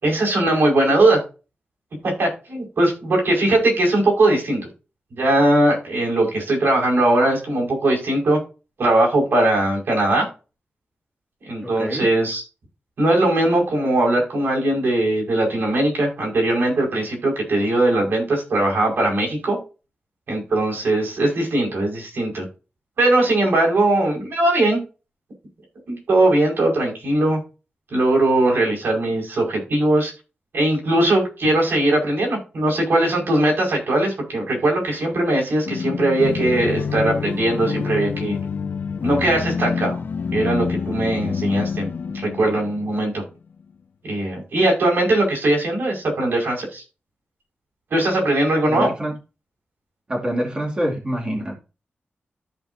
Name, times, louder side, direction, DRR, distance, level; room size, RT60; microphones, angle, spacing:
voice 1, 0.0-1.2 2.0-4.6 5.1-8.4 8.8-10.3 11.5-12.4 13.0-19.6 20.3-22.5 23.0-24.8 25.9-27.4 27.9-30.1 30.5-38.4 39.0-40.0 40.3-41.9 42.1-43.2 44.0-46.8 47.9-48.9, right 1 dB, 70° right, 5.2 m, -20 dB
voice 2, 11.6-12.1 48.6-49.1 50.1-51.5, equal, 25° right, 2.6 m, -26 dB
sound 1, 35.6-43.2, left 5 dB, 55° left, 0.7 m, -27 dB
14.0 x 5.6 x 2.8 m
wide cardioid pair, 175°, 4 cm